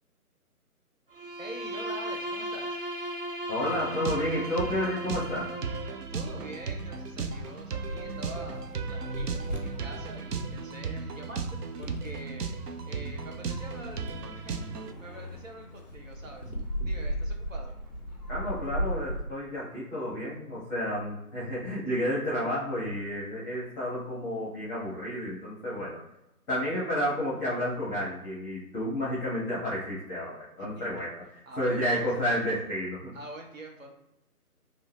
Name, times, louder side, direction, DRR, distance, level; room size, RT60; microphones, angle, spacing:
Bowed string instrument, 1.1-6.0, equal, 40° right, 0.4 m, -36 dB
voice 1, 1.4-2.8 6.1-8.6 8.9-12.5 12.9-16.5 16.9-17.7 30.6-31.1 31.5-31.8 32.1-32.2 33.1-33.9, right 2 dB, 55° right, 1 dB, 0.8 m, -45 dB
voice 2, 3.5-5.5 18.3-26.0 26.5-33.1, equal, ahead, -9 dB, 0.8 m, -31 dB
sound 1, 3.6-14.9, right 4 dB, 85° right, 0.6 m, -36 dB
sound 2, 7.0-19.2, equal, 30° left, 0.5 m, -38 dB
2.6 x 2.5 x 3.2 m, 0.87 s
figure-of-eight pair, 160°, 46 cm